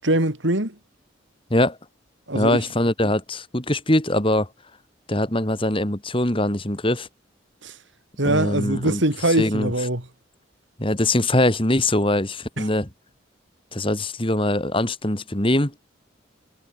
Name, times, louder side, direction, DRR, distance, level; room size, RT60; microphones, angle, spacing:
voice 1, 0.0-0.7 2.3-2.6 7.6-7.7 8.2-10.0 12.6-12.7, right 1 dB, 70° right, 4.4 m, -22 dB
voice 2, 2.3-4.5 5.1-7.1 8.2-9.0 9.4-9.7 10.8-12.9 13.7-15.7, left 1 dB, 25° left, 2.8 m, -22 dB
head